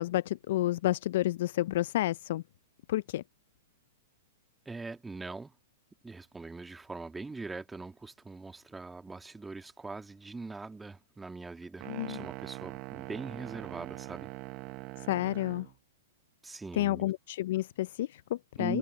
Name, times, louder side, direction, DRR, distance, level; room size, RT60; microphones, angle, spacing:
voice 1, 0.0-2.4 2.9-3.2 11.9-12.2 15.1-15.7 16.8-18.8, left 15 dB, 60° left, 0.4 m, -30 dB
voice 2, 4.6-5.5 6.0-14.3 16.4-17.1 18.6-18.8, right 3 dB, 10° right, 1.7 m, -42 dB
sound 1, 11.8-15.7, right 22 dB, 40° right, 0.9 m, -43 dB
hypercardioid pair, 135°, 0 cm